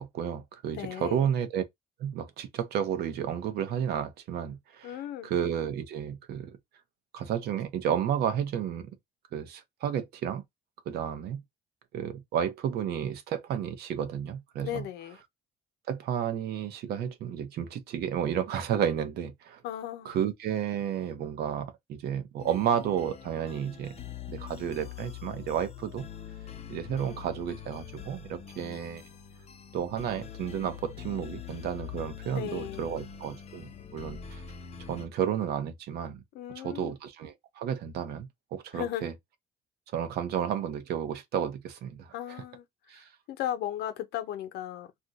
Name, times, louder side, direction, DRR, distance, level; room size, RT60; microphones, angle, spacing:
voice 1, 0.0-1.6 2.0-4.9 5.2-6.6 7.1-8.9 9.3-10.4 10.9-11.4 11.9-14.8 15.9-19.6 20.0-23.9 24.3-26.0 26.7-29.0 29.7-34.4 34.9-36.2 36.6-39.1 39.9-42.1 42.9-43.1, right 9 dB, 70° right, 0.7 m, -32 dB
voice 2, 0.7-1.3 4.8-5.3 14.6-15.2 19.6-20.2 32.3-33.0 36.3-37.0 38.7-39.1 42.1-42.6 42.9-45.0, left 11 dB, 75° left, 0.7 m, -36 dB
sound 1, 22.4-35.1, left 9 dB, 40° left, 0.6 m, -44 dB
2.5 x 2.2 x 3.9 m
cardioid pair, 110°, 17 cm